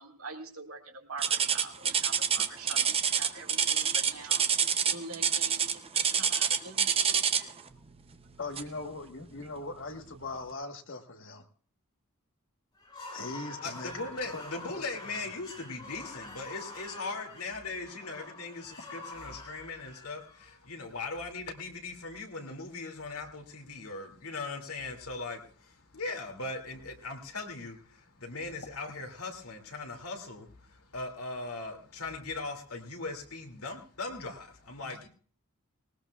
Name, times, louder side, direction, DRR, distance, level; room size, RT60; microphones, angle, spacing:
voice 1, 0.0-7.5 9.4-9.5, right 3 dB, 70° right, 3 dB, 1.9 m, -45 dB
sound 1, 1.2-7.6 8.5-8.8 9.4-9.5 10.1-10.2, right 7 dB, 25° right, 0.6 m, -27 dB
voice 2, 8.4-11.4 13.1-14.1 14.3-14.8, left 3 dB, 55° left, 6 dB, 1.4 m, -40 dB
sound 2, 12.8-20.9, left 2 dB, 20° left, 5.4 m, -46 dB
voice 3, 13.6-35.1, left 3 dB, 80° left, 3 dB, 2.5 m, -39 dB
19.5 x 19.5 x 2.4 m, 0.43 s
head